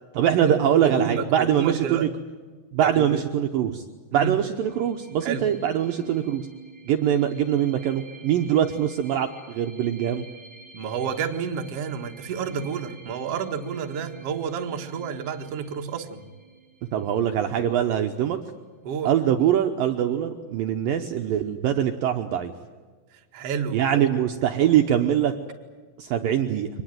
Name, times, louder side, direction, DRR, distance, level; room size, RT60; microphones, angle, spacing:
voice 1, 0.2-2.1 2.7-3.8 4.1-6.5 6.9-10.3 16.9-18.4 19.1-22.5 23.7-25.3 26.0-26.7, right 10 dB, 70° right, 5 dB, 2.2 m, -23 dB
voice 2, 0.8-2.1 2.8-3.2 4.1-4.3 5.2-5.4 10.7-16.2 18.8-19.1 23.3-24.0 24.6-24.7, right 7 dB, 55° right, 3 dB, 1.7 m, -30 dB
sound 1, 4.6-18.0, right 4 dB, ahead, 4.8 m, -49 dB
24.5 x 19.5 x 9.1 m, 1.4 s
omnidirectional pair, 5.0 m